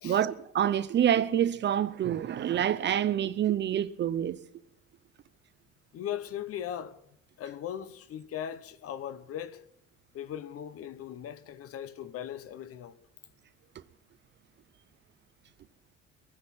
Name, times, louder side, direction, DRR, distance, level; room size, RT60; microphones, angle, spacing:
voice 1, 0.0-4.4, right 10 dB, 40° right, 0.6 m, -27 dB
voice 2, 5.9-7.0 7.4-9.6 10.1-13.0, left 10 dB, 50° left, 0.9 m, -38 dB
22.5 x 9.8 x 5.9 m
cardioid pair, 160°, 29 cm